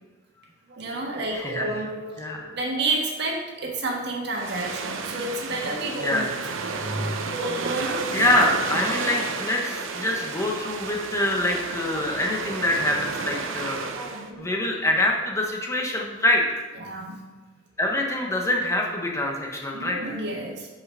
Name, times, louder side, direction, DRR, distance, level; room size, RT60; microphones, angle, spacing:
voice 1, 0.7-6.3 6.7-8.1 9.3-9.4 13.9-14.5 16.8-17.2 19.7-20.7, right 2 dB, 60° right, 0 dB, 1.4 m, -30 dB
voice 2, 1.3-1.7 2.2-2.5 6.0-6.3 8.1-13.9 14.4-16.4 17.8-20.2, left 1 dB, 15° left, 0 dB, 0.9 m, -25 dB
sound 1, 4.3-14.3, right 4 dB, 80° right, 0.7 m, -32 dB
6.5 x 4.9 x 5.6 m, 1.3 s
head